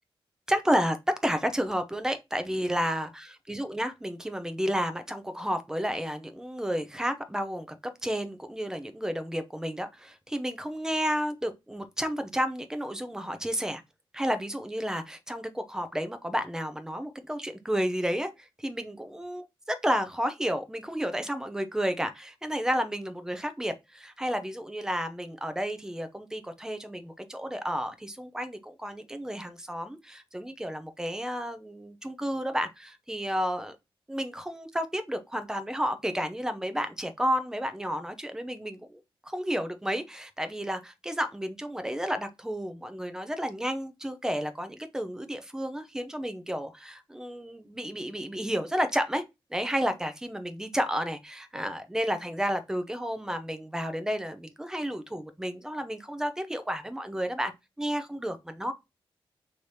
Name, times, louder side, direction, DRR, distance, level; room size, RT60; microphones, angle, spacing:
voice 1, 0.5-7.8 8.0-13.8 14.1-33.8 34.1-49.2 49.5-57.5 57.8-58.7, equal, 5° right, 0.7 m, -31 dB
3.3 x 3.2 x 4.1 m
cardioid pair, 95°, 9 cm